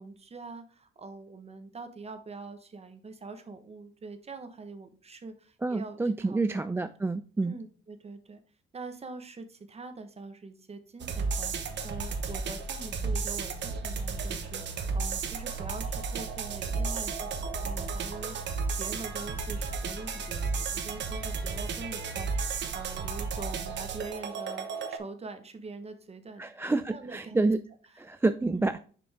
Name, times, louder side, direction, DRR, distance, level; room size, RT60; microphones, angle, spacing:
voice 1, 0.0-6.9 7.4-8.4 8.7-26.5 26.8-27.5 28.5-28.6, right 3 dB, 30° right, 9 dB, 1.1 m, -44 dB
voice 2, 5.6-7.5 26.4-27.6 28.0-28.8, right 3 dB, 10° right, 10 dB, 0.3 m, -28 dB
sound 1, 11.0-25.0, right 4 dB, 65° right, 1.1 m, -33 dB
6.5 x 5.2 x 3.5 m, 0.42 s
cardioid pair, 90°, 20 cm